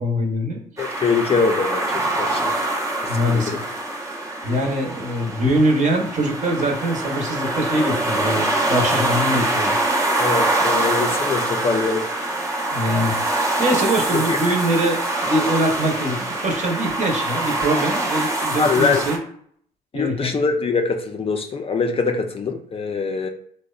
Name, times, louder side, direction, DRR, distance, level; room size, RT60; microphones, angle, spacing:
voice 1, 0.0-0.6 3.1-3.6 4.4-9.8 10.6-10.7 12.7-19.2 19.9-20.4, equal, 45° right, 1 dB, 0.8 m, -23 dB
voice 2, 0.8-2.5 3.3-3.6 10.2-12.0 14.1-14.4 18.5-19.0 19.9-23.3, left 4 dB, 30° left, 5 dB, 0.4 m, -23 dB
sound 1, 0.8-19.2, right 2 dB, 15° right, 0.5 m, -24 dB
2.7 x 2.1 x 2.3 m, 0.64 s
supercardioid pair, 65°, 18 cm